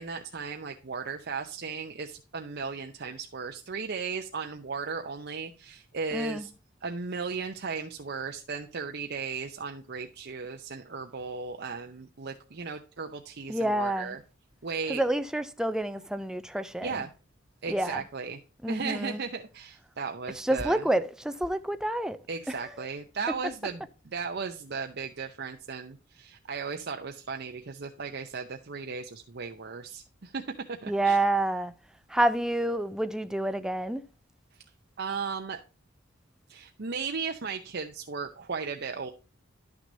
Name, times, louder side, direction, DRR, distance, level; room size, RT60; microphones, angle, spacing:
voice 1, 0.0-6.5 6.8-14.2 14.6-15.0 16.8-17.1 17.6-18.4 18.7-20.8 22.3-23.8 24.1-30.4 30.8-31.2 35.0-35.6 36.5-39.1, right 5 dB, 55° right, 0.7 m, -36 dB
voice 2, 6.1-6.5 13.5-14.2 14.9-17.0 17.7-18.0 18.6-19.2 20.3-22.2 22.5-22.9 30.9-31.7 32.1-34.0, right 1 dB, 5° right, 0.4 m, -28 dB
11.5 x 6.1 x 2.7 m
head